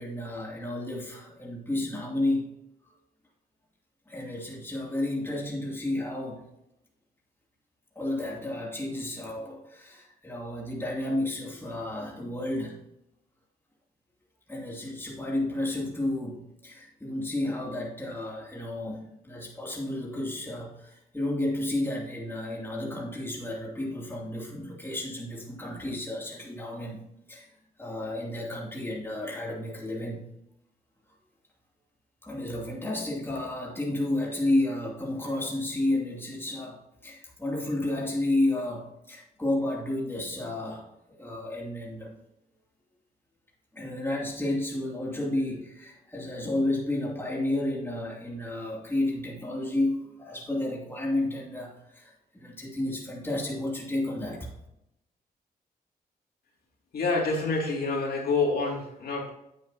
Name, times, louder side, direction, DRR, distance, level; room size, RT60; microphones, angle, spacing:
voice 1, 0.0-2.6 4.1-6.4 7.9-12.8 14.5-27.0 27.3-27.5 27.8-30.2 32.2-36.8 37.0-40.9 41.2-42.1 43.7-54.5, left 1 dB, 15° left, -3 dB, 2.7 m, -31 dB
voice 2, 56.9-59.3, left 3 dB, 65° left, -1 dB, 2.6 m, -27 dB
9.0 x 8.7 x 2.9 m, 0.82 s
cardioid pair, 80°, 17 cm